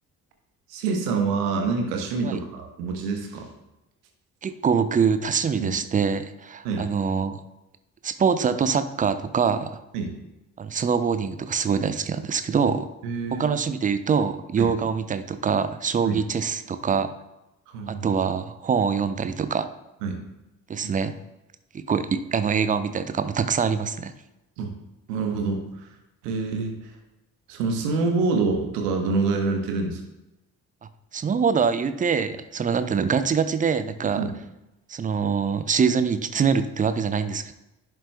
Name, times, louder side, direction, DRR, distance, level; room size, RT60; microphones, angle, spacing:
voice 1, 0.7-3.5 5.6-5.7 6.6-6.8 9.9-10.1 13.0-13.5 14.6-14.7 16.0-16.2 17.7-18.1 20.0-20.2 24.6-24.7 25.1-25.9 26.2-26.7 27.5-30.0 34.2-34.3, right 4 dB, 70° right, 4 dB, 1.2 m, -26 dB
voice 2, 4.4-7.4 8.0-9.8 10.6-12.9 13.3-17.1 17.9-19.7 20.7-21.1 21.9-24.1 31.1-34.2 34.9-37.5, right 6 dB, 15° right, 11 dB, 0.4 m, -24 dB
11.0 x 6.2 x 2.3 m, 0.95 s
figure-of-eight pair, 40°, 49 cm